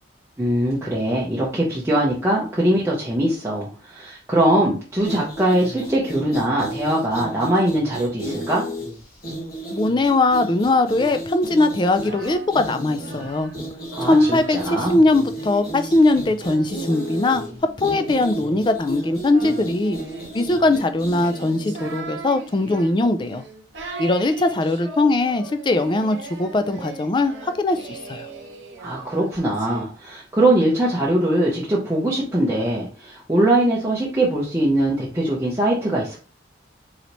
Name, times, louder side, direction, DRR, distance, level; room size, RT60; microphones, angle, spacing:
voice 1, 0.4-8.7 13.9-15.0 28.8-36.2, right 1 dB, 15° right, -6 dB, 0.7 m, -21 dB
sound 1, 5.0-22.0, right 1 dB, 50° left, 1.4 m, -33 dB
voice 2, 9.7-13.5 14.0-17.5 17.8-20.0 20.3-23.4 24.0-28.3, left 2 dB, 25° left, 9 dB, 0.3 m, -20 dB
Singing, 11.8-14.8 15.3-29.8, right 3 dB, 80° right, 0.9 m, -39 dB
4.0 x 3.1 x 2.9 m, 0.38 s
head